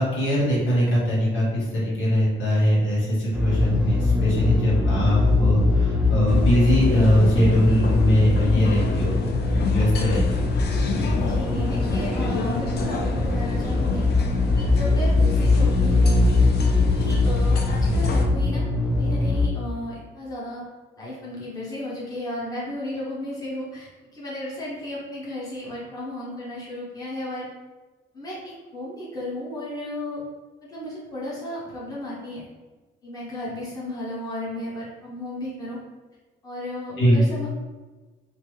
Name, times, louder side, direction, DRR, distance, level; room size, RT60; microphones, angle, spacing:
voice 1, 0.0-9.2 9.7-10.4 10.9-11.1 37.0-37.2, equal, 70° left, -7 dB, 1.5 m, -21 dB
sound 1, 3.3-19.5, left 3 dB, 5° right, 0.4 m, -22 dB
sound 2, 6.3-18.2, left 3 dB, 55° left, 0.4 m, -31 dB
voice 2, 11.3-14.1 14.6-16.5 16.9-18.6 19.0-20.6 21.0-27.5 28.1-28.4 28.7-30.2 30.6-32.4 33.0-35.8 36.4-37.5, left 1 dB, 20° left, -7 dB, 1.0 m, -34 dB
3.1 x 2.1 x 3.2 m, 1.3 s
cardioid pair, 90°, 20 cm